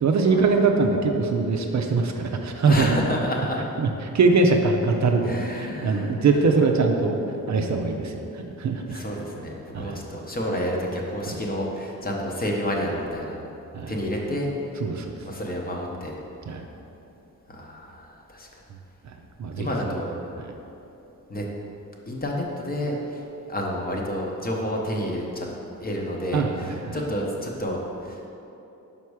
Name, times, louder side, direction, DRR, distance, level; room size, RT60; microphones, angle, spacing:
voice 1, 0.0-3.0 3.8-3.9 4.1-7.2 7.5-9.0 9.7-10.0 11.3-11.4 13.7-13.9 14.8-15.2 16.5-16.6 19.0-19.9 20.4-20.5 26.3-27.0, right 4 dB, 50° right, 3 dB, 0.5 m, -22 dB
voice 2, 2.6-3.6 5.2-6.1 8.9-13.5 13.9-14.8 15.2-16.1 17.5-18.5 19.6-20.2 21.3-21.5 22.1-25.5 25.8-28.3, equal, 25° left, -1 dB, 0.8 m, -29 dB
5.8 x 5.3 x 4.7 m, 2.9 s
wide cardioid pair, 160°, 35 cm